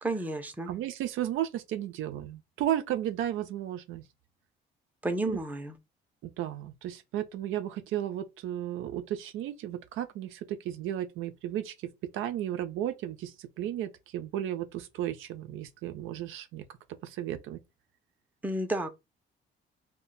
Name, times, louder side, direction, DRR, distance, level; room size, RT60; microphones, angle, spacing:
voice 1, 0.0-0.7 5.0-5.8 18.4-18.9, right 2 dB, 10° right, 0.6 m, -31 dB
voice 2, 0.7-4.0 5.3-5.4 6.2-11.7 12.1-16.6 17.0-17.6, right 11 dB, 85° right, 0.5 m, -34 dB
2.2 x 2.2 x 3.8 m
cardioid pair, 90°, 20 cm